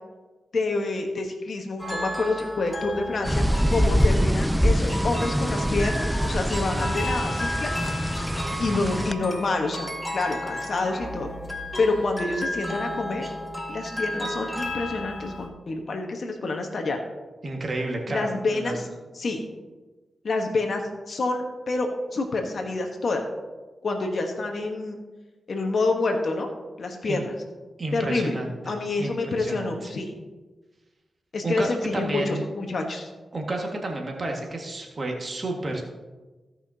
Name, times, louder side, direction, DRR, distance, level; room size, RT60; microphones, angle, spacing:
voice 1, 0.5-3.4 3.7-7.7 8.6-11.3 11.8-13.2 13.7-17.0 18.1-18.8 19.2-19.4 20.2-20.8 21.1-23.2 23.8-25.0 25.5-26.5 26.8-27.3 27.9-28.4 28.6-30.1 31.3-33.1, left 3 dB, 65° left, 4 dB, 1.3 m, -27 dB
sound 1, 1.8-15.5, left 1 dB, 20° left, 1.9 m, -33 dB
sound 2, 3.2-9.1, equal, ahead, 0.5 m, -24 dB
voice 2, 17.4-18.8 27.0-27.2 27.8-28.5 29.0-29.9 31.4-31.7 31.9-32.4 33.3-35.8, right 2 dB, 50° right, 1 dB, 1.8 m, -31 dB
16.5 x 5.9 x 2.8 m, 1.2 s
cardioid pair, 45°, 0 cm